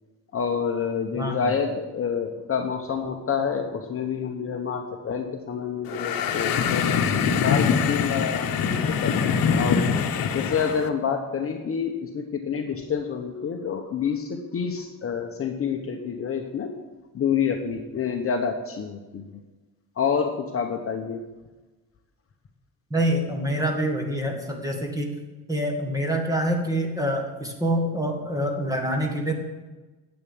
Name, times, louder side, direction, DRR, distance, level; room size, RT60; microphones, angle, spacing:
voice 1, 0.3-9.2 9.5-16.7 17.1-19.3 20.0-21.2, left 6 dB, 35° left, 4 dB, 1.0 m, -28 dB
voice 2, 1.1-1.5 22.9-25.1 25.5-29.3, right 1 dB, 10° right, 2 dB, 1.9 m, -26 dB
sound 1, 5.9-10.9, left 6 dB, 60° left, 1.2 m, -24 dB
10.5 x 8.1 x 8.6 m, 1.2 s
cardioid pair, 160°, 39 cm